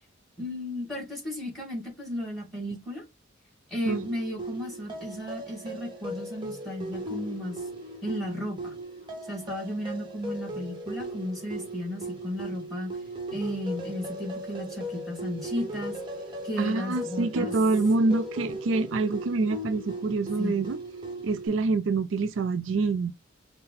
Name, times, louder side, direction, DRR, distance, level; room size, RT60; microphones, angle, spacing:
voice 1, 0.4-3.0 3.7-7.6 8.0-8.7 9.3-12.9 13.3-15.9 16.4-17.5 20.4-20.5, left 1 dB, ahead, 2.3 m, -34 dB
sound 1, 3.9-21.5, right 1 dB, 25° right, 1.1 m, -37 dB
voice 2, 16.6-20.8 21.2-23.1, right 3 dB, 65° right, 0.4 m, -26 dB
5.6 x 2.2 x 3.9 m
head